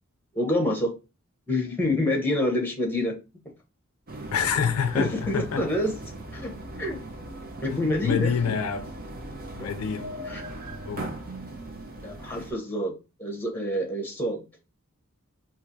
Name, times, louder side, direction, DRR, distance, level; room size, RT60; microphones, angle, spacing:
voice 1, 0.3-0.9 1.5-3.1 4.9-5.9 6.3-6.5 6.8-7.0 7.6-8.5 9.6-9.7 10.3-10.4 12.0-14.5, left 1 dB, 10° left, 1.0 m, -27 dB
sound 1, 4.1-12.5, right 1 dB, 45° right, 0.7 m, -39 dB
voice 2, 4.3-5.7 8.0-8.9 9.5-10.4 10.9-11.2, left 6 dB, 80° left, 0.4 m, -27 dB
4.3 x 2.5 x 2.6 m
head